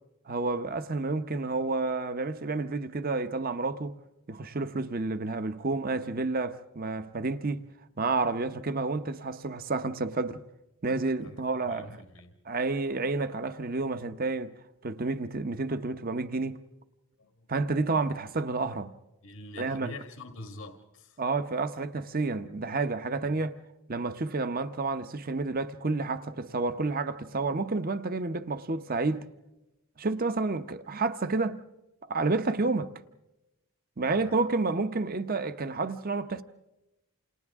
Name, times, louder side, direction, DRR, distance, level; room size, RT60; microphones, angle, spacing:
voice 1, 0.3-4.0 4.3-7.6 8.0-10.4 10.8-12.0 12.5-14.5 14.8-16.6 17.5-18.9 19.6-19.9 21.2-23.6 23.9-29.3 30.0-31.6 32.1-32.9 34.0-36.4, right 3 dB, 40° right, 0.8 m, -30 dB
voice 2, 11.2-12.3 17.2-17.5 19.2-21.2 23.3-23.5 34.1-34.5, left 2 dB, 85° left, 1.7 m, -45 dB
29.0 x 28.0 x 3.6 m
head